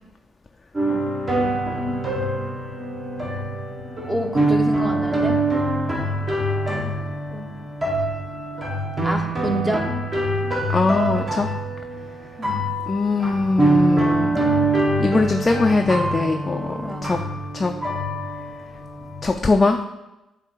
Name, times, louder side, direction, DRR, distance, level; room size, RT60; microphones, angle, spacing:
sound 1, 0.7-19.3, right 1 dB, 30° right, 1.5 m, -24 dB
voice 1, 0.8-1.1 1.4-1.7 4.0-5.4 6.7-6.9 7.3-7.5 9.0-9.8 12.4-12.6 16.7-17.2, right 1 dB, 10° right, 2 dB, 1.0 m, -28 dB
voice 2, 10.7-11.5 12.9-14.4 15.0-17.2 17.5-17.7 19.2-19.9, left 3 dB, 25° left, 3 dB, 0.4 m, -21 dB
7.2 x 3.4 x 4.7 m, 0.96 s
cardioid pair, 90°, 0 cm